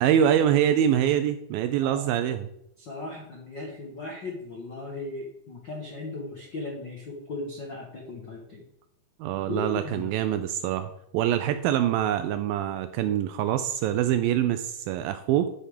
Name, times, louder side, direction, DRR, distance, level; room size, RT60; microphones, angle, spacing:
voice 1, 0.0-2.5 9.2-15.5, right 10 dB, 80° right, 10 dB, 2.1 m, -25 dB
voice 2, 2.8-8.6 9.5-10.1, left 2 dB, 70° left, 0 dB, 1.0 m, -37 dB
11.0 x 6.0 x 5.1 m, 0.80 s
omnidirectional pair, 4.6 m